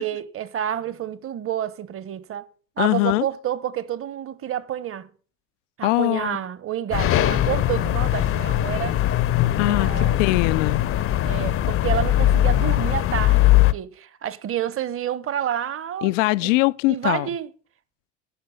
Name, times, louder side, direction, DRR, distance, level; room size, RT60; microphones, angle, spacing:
voice 1, 0.0-2.5 2.8-5.1 5.8-9.0 9.6-10.4 11.2-16.1 16.4-16.5 16.9-17.5, right 10 dB, 35° right, 1.1 m, -29 dB
voice 2, 2.8-3.3 5.8-6.4 9.6-10.8 16.0-17.3, left 21 dB, 70° left, 0.5 m, -22 dB
sound 1, 6.9-13.7, left 13 dB, 35° left, 0.7 m, -20 dB
10.0 x 6.0 x 8.3 m
hypercardioid pair, 80°, 39 cm